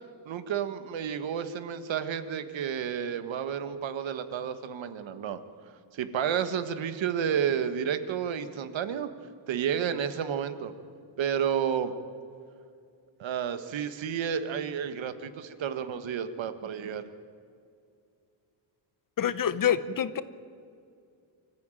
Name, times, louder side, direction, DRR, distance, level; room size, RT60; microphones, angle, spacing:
voice 1, 0.2-5.4 5.9-9.1 9.5-10.7 11.2-11.9 13.2-17.1, right 8 dB, 65° right, 10 dB, 1.5 m, -31 dB
voice 2, 19.2-20.2, left 9 dB, 45° left, 15 dB, 0.9 m, -26 dB
25.0 x 14.0 x 9.1 m, 2.3 s
cardioid pair, 125°, 48 cm